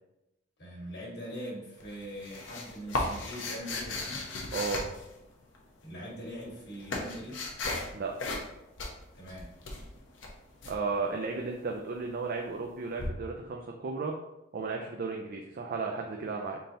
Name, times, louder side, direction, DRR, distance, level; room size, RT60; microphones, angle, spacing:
voice 1, 0.6-4.3 5.8-7.5 9.1-9.5, equal, 60° left, -5 dB, 1.5 m, -42 dB
sound 1, 1.8-5.6 6.3-7.9 8.2-8.5 8.8-10.8 13.0-13.1, left 2 dB, 80° left, 0.8 m, -36 dB
voice 2, 4.5-4.9 7.9-8.1 10.6-14.1 14.5-16.6, right 4 dB, 50° right, 1 dB, 0.4 m, -34 dB
3.9 x 3.8 x 2.8 m, 0.91 s
head